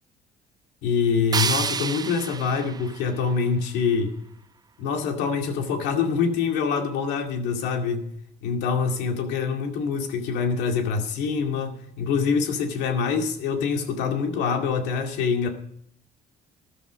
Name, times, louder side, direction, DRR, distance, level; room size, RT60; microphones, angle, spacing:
voice 1, 0.8-4.1 4.8-8.1 8.4-15.5, left 5 dB, 90° left, 5 dB, 2.2 m, -25 dB
sound 1, 1.3-4.3, right 6 dB, 25° right, 0.4 m, -30 dB
13.5 x 11.5 x 5.1 m, 0.69 s
cardioid pair, 110°, 17 cm